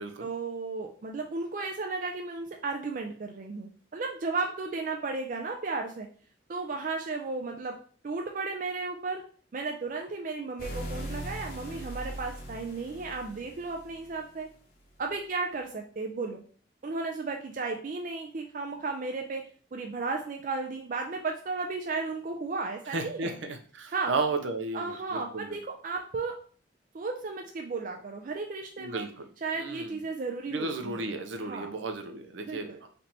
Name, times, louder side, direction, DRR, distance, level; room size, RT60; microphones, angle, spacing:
voice 1, 0.2-6.1 6.5-7.8 8.0-9.2 9.5-14.5 15.0-16.4 16.8-19.4 19.7-23.4 23.9-24.1 24.7-26.4 26.9-29.1 29.4-31.0 31.4-31.7 32.4-32.8, right 3 dB, 45° right, 2 dB, 0.4 m, -34 dB
sound 1, 10.6-14.2, equal, 45° left, 0.8 m, -39 dB
voice 2, 22.9-25.6 28.8-29.3 29.6-30.0 30.5-32.9, right 3 dB, 80° right, 6 dB, 0.6 m, -34 dB
3.3 x 2.8 x 4.0 m, 0.44 s
head